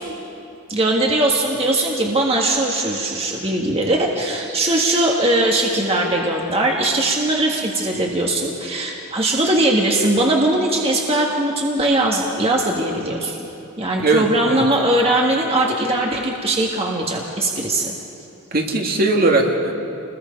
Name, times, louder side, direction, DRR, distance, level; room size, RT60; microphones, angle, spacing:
voice 1, 0.7-13.5 13.8-18.0, right 1 dB, 25° right, -1 dB, 1.7 m, -20 dB
voice 2, 14.0-14.6 18.5-19.7, right 2 dB, 45° right, 1 dB, 2.0 m, -19 dB
28.5 x 21.0 x 5.3 m, 2.8 s
head